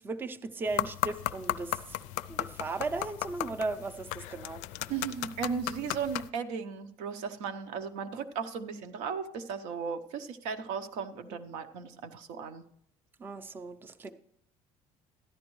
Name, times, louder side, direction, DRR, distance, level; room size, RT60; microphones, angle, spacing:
voice 1, 0.0-2.0 2.3-4.9 11.3-11.4 13.2-14.1, right 3 dB, 15° right, 0.4 m, -37 dB
sound 1, 0.7-6.3, left 16 dB, 80° left, 0.4 m, -36 dB
voice 2, 4.9-12.6, right 6 dB, 80° right, 0.8 m, -36 dB
13.5 x 10.5 x 3.1 m
cardioid pair, 170°, 12 cm